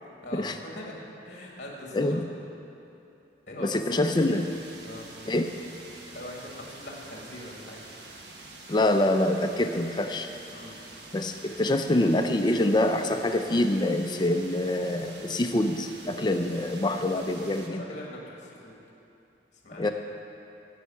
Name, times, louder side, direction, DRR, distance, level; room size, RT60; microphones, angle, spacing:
voice 1, 0.2-2.2 3.5-4.0 4.8-5.1 6.1-7.8 10.5-10.9 17.7-18.7 19.5-19.9, equal, 45° left, -2 dB, 1.9 m, -42 dB
voice 2, 3.6-4.5 5.3-5.5 8.7-10.3 11.1-17.9 19.8-19.9, left 1 dB, 25° left, 6 dB, 0.4 m, -25 dB
sound 1, 4.0-17.7, right 2 dB, 65° right, 1.3 m, -47 dB
16.5 x 5.5 x 7.1 m, 2.8 s
head